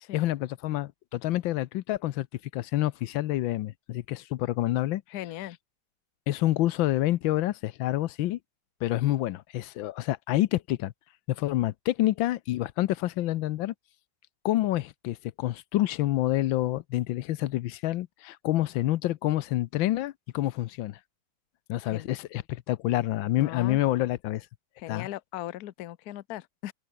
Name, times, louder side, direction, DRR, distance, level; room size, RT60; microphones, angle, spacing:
voice 1, 0.1-2.3 2.5-5.0 6.3-8.4 8.8-10.9 11.3-13.7 14.4-21.0 21.7-24.5 24.9-25.1, left 15 dB, 85° left, 1.4 m, -28 dB
voice 2, 5.1-5.6 21.9-22.1 23.4-23.8 24.8-26.7, left 14 dB, 60° left, 1.1 m, -38 dB
omnidirectional pair, 2.1 m